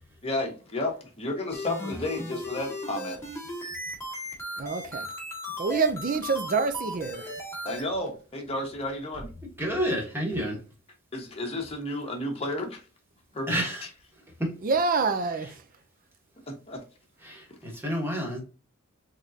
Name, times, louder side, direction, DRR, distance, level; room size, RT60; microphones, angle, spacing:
voice 1, 0.2-3.2 7.6-9.3 11.1-12.8 13.3-13.6 16.5-16.8, left 1 dB, 30° left, 1.0 m, -32 dB
sound 1, 1.5-7.8, equal, 10° left, 1.2 m, -36 dB
voice 2, 4.6-5.1 5.6-7.3 14.6-15.6, right 4 dB, 40° right, 0.5 m, -26 dB
voice 3, 9.6-10.6 13.5-13.9 14.4-14.5 17.2-18.4, equal, 10° right, 1.3 m, -29 dB
3.6 x 3.6 x 2.7 m
head